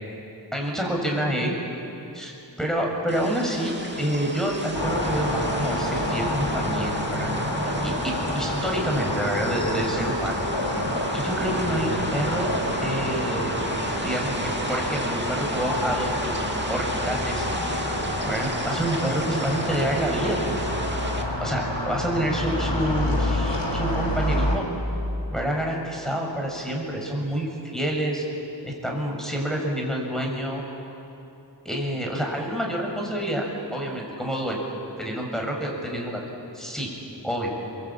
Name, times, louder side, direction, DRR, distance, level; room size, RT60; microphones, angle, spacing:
voice 1, 0.5-1.5 2.1-7.3 7.8-10.4 11.1-12.5 12.8-13.7 14.0-17.4 18.2-20.6 21.4-24.6 25.3-28.2 28.6-30.6 31.6-33.4 33.7-34.7 35.0-36.2 36.5-36.9 37.2-37.5, equal, ahead, -1 dB, 6.8 m, -28 dB
sound 1, 3.1-21.2, right 1 dB, 25° right, 2.6 m, -33 dB
sound 2, 4.7-24.6, left 1 dB, 85° left, 3.7 m, -28 dB
28.0 x 23.5 x 8.8 m, 2.9 s
wide cardioid pair, 45°, 43 cm